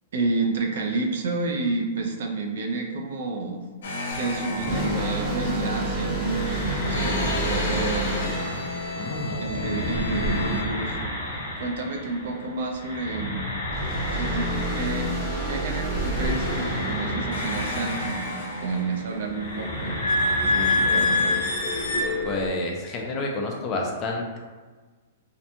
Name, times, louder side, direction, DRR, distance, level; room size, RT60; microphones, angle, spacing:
voice 1, 0.1-3.6 4.1-8.2 9.3-11.0 11.6-13.6 14.1-20.0 20.4-21.5, right 3 dB, 65° right, 2 dB, 0.4 m, -30 dB
sound 1, 3.8-12.5 12.7-22.5, left 2 dB, 75° left, 0.7 m, -29 dB
Thunder, 4.1-13.8 14.4-14.5 14.9-15.0 15.3-15.4, equal, 85° right, 1.3 m, -41 dB
sound 2, 4.7-10.1 13.6-18.4, right 1 dB, 15° right, 0.7 m, -30 dB
voice 2, 9.0-9.4 22.2-24.4, left 2 dB, 20° left, 0 dB, 0.3 m, -29 dB
2.5 x 2.2 x 2.7 m, 1.4 s
hypercardioid pair, 170°, 0 cm